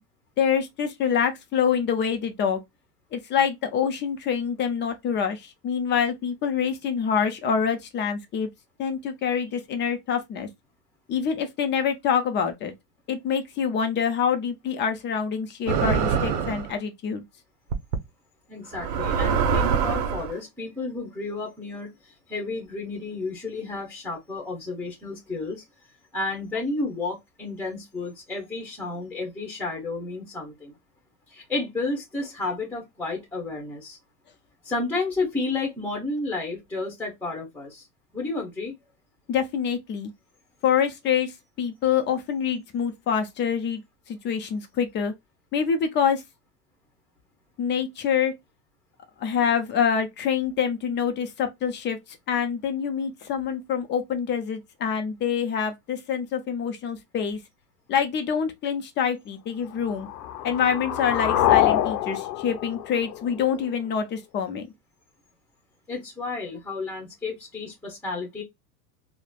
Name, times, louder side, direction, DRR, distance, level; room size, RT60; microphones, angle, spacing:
voice 1, 0.4-2.6 3.1-8.5 8.8-10.5 11.1-12.7 13.1-17.2 39.3-40.1 40.6-41.3 41.6-43.8 44.1-45.1 45.5-46.2 47.6-48.3 49.2-52.0 52.3-57.4 57.9-60.1 60.4-64.7, left 7 dB, 25° left, 0.4 m, -26 dB
sound 1, 15.7-16.7 17.7-18.0 18.7-20.3, right 6 dB, 75° right, 0.8 m, -24 dB
voice 2, 18.5-25.6 26.1-30.7 31.3-34.0 34.6-37.9 38.1-38.7 65.9-68.4, left 3 dB, 5° left, 0.9 m, -31 dB
sound 2, 59.8-63.8, left 12 dB, 75° left, 0.7 m, -25 dB
3.1 x 2.0 x 2.3 m
hypercardioid pair, 110°, 50 cm